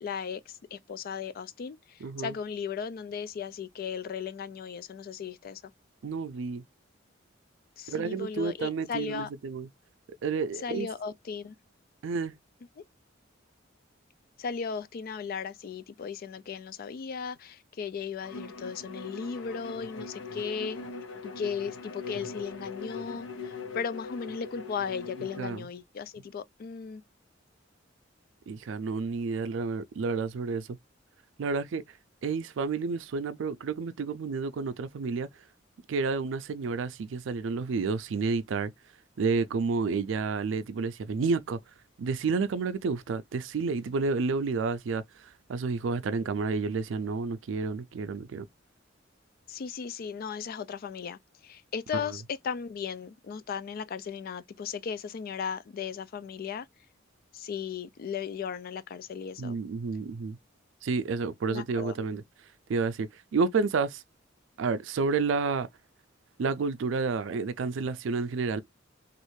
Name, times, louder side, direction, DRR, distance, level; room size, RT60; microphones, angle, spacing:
voice 1, 0.0-5.7 7.8-9.3 10.6-11.6 12.8-12.9 14.4-20.8 21.2-27.0 49.5-56.7 57.3-59.6 61.5-62.0, left 6 dB, 50° left, 0.3 m, -36 dB
voice 2, 2.0-2.4 6.0-6.6 7.9-9.7 10.2-10.9 12.0-12.4 25.4-25.7 28.5-30.8 31.4-31.8 32.2-35.3 35.9-38.7 39.2-41.6 42.0-45.0 45.5-48.4 51.9-52.0 59.4-60.4 60.8-62.2 62.7-64.0 64.6-65.7 66.4-68.6, right 4 dB, 70° right, 0.4 m, -30 dB
Bowed string instrument, 18.2-25.6, left 4 dB, 70° left, 0.7 m, -41 dB
3.1 x 2.4 x 3.1 m
head